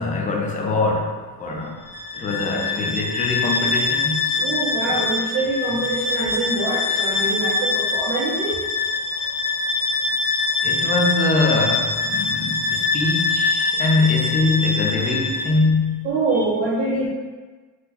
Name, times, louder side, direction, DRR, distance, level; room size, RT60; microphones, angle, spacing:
voice 1, 0.0-1.7 2.1-4.5 4.9-5.0 10.6-16.1, left 3 dB, 25° left, 0 dB, 0.3 m, -23 dB
Bowed string instrument, 1.8-15.7, left 4 dB, 75° left, 1.0 m, -24 dB
voice 2, 4.4-8.6 16.0-17.1, right 3 dB, 40° right, -8 dB, 0.6 m, -24 dB
3.7 x 2.1 x 2.8 m, 1.3 s
cardioid pair, 160°, 32 cm